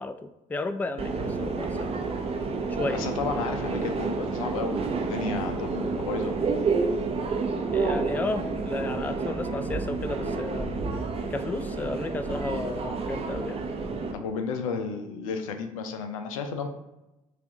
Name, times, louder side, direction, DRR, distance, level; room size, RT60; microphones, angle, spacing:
voice 1, 0.0-2.2 2.7-3.0 7.7-10.7 11.3-13.6, left 2 dB, 10° left, 11 dB, 0.3 m, -33 dB
Subway metro underground, 1.0-14.1, right 4 dB, 35° right, 0.7 m, -29 dB
voice 2, 2.9-6.3 14.1-16.7, left 5 dB, 75° left, 6 dB, 0.5 m, -32 dB
5.8 x 2.5 x 3.6 m, 0.98 s
figure-of-eight pair, 50°, 18 cm